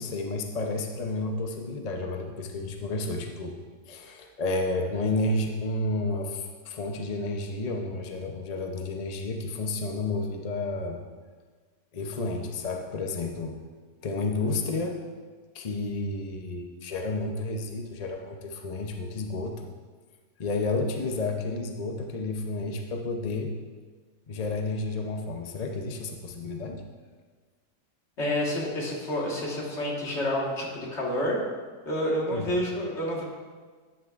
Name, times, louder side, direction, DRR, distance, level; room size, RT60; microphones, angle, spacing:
voice 1, 0.0-3.6 3.9-11.0 11.9-13.5 14.0-15.0 15.5-19.7 20.4-23.5 24.3-26.8 32.3-32.5, left 2 dB, 60° left, 3 dB, 0.4 m, -31 dB
voice 2, 28.2-31.4 31.8-33.2, left 1 dB, 45° left, -3 dB, 1.8 m, -29 dB
11.5 x 8.9 x 2.5 m, 1.5 s
omnidirectional pair, 1.7 m